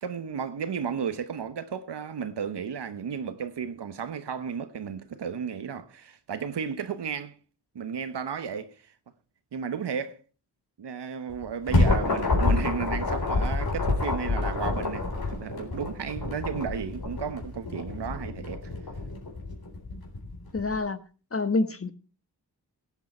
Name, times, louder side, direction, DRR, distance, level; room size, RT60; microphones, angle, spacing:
voice 1, 0.0-7.3 7.7-8.7 9.5-10.2 10.8-18.6, right 7 dB, 90° right, 1.1 m, -33 dB
sound 1, 11.3-20.8, left 3 dB, 60° left, 4.0 m, -28 dB
voice 2, 20.5-21.0 21.3-21.9, left 3 dB, 35° left, 1.2 m, -27 dB
17.0 x 8.2 x 4.3 m
cardioid pair, 60°, 40 cm